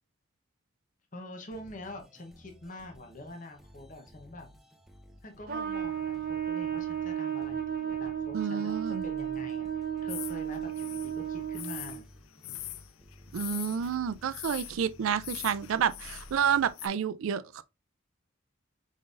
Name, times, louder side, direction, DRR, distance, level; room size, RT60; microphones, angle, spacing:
voice 1, 1.1-4.5 5.2-9.7 10.0-12.1, left 1 dB, 40° left, 0.9 m, -45 dB
sound 1, 1.4-16.7, equal, ahead, 0.5 m, -54 dB
Trumpet, 5.5-12.0, right 9 dB, 45° right, 0.9 m, -34 dB
voice 2, 8.3-9.0 13.3-17.6, right 8 dB, 80° right, 0.4 m, -29 dB
Bosque ambiente, 10.1-16.9, left 14 dB, 80° left, 0.4 m, -43 dB
5.2 x 3.8 x 2.4 m
head